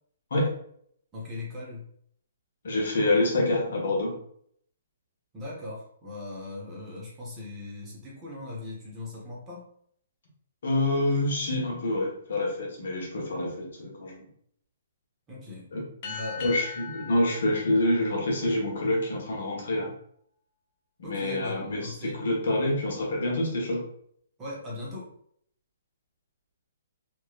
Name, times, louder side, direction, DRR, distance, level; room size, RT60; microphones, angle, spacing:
voice 1, 1.1-1.9 5.3-9.6 15.3-15.7 16.0-16.4 21.0-22.2 24.4-25.1, left 2 dB, 15° right, -5 dB, 1.0 m, -39 dB
voice 2, 2.6-4.1 10.6-14.3 15.7-19.9 21.0-23.8, left 1 dB, 70° left, -2 dB, 1.3 m, -27 dB
sound 1, 16.0-19.0, left 6 dB, 40° left, 0.7 m, -41 dB
3.0 x 3.0 x 2.4 m, 0.65 s
hypercardioid pair, 155°, 0 cm